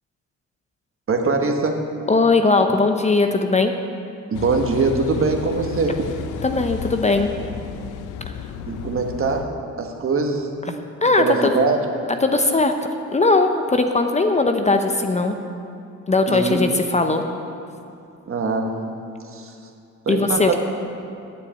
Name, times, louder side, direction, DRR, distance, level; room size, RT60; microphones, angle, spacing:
voice 1, 1.1-1.8 4.3-6.0 8.7-10.5 11.2-11.8 16.3-16.6 18.3-18.7 19.3-19.5 20.0-20.6, right 4 dB, 45° right, 3 dB, 1.4 m, -22 dB
voice 2, 2.1-3.7 6.4-7.3 11.0-11.5 12.2-12.7 13.1-15.4 16.1-17.2 20.1-20.6, left 3 dB, 25° left, 6 dB, 0.7 m, -19 dB
Car passing by / Idling / Accelerating revving vroom, 4.3-9.5, left 7 dB, 90° left, 0.6 m, -33 dB
9.6 x 7.4 x 8.7 m, 2.6 s
cardioid pair, 90°, 30 cm